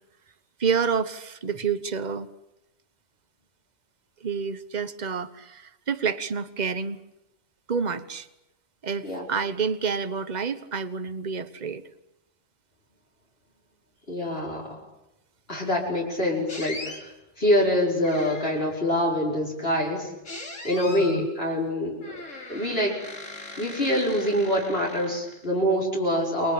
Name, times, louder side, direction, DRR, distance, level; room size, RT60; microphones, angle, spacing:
voice 1, 0.6-2.3 4.2-7.0 7.7-8.3 8.8-11.8 20.9-21.3, right 6 dB, 35° right, 13 dB, 1.3 m, -28 dB
voice 2, 14.1-14.8 15.5-17.1 17.4-20.1 20.6-22.2 22.5-23.0 23.6-26.5, equal, 50° left, -3 dB, 5.5 m, -25 dB
sound 1, 16.5-17.0 18.0-18.8 20.2-21.2 22.0-25.5, left 2 dB, 70° left, 4.2 m, -40 dB
29.5 x 22.5 x 8.8 m, 0.91 s
omnidirectional pair, 1.3 m